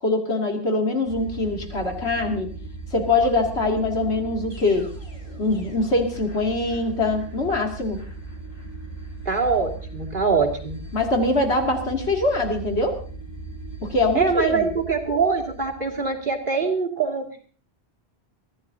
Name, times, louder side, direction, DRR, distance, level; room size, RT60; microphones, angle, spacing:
voice 1, 0.0-2.5 2.9-4.9 5.4-8.0 10.9-13.0 13.8-14.7, left 2 dB, 85° left, 2 dB, 3.0 m, -23 dB
sound 1, 1.1-16.4, right 3 dB, 55° left, 3.0 m, -38 dB
voice 2, 9.2-10.8 14.1-17.3, right 5 dB, 50° right, 1 dB, 2.9 m, -23 dB
23.5 x 15.0 x 2.8 m, 0.42 s
omnidirectional pair, 1.1 m